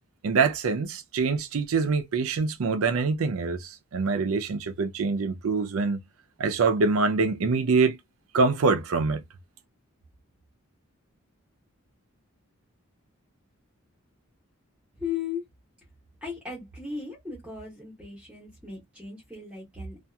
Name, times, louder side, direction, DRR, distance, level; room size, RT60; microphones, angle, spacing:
voice 1, 0.2-6.0 6.4-8.0 8.3-9.2, right 4 dB, 80° right, 0.5 m, -25 dB
voice 2, 15.0-15.4 16.2-20.0, left 6 dB, 5° right, 1.2 m, -36 dB
2.7 x 2.4 x 2.2 m
head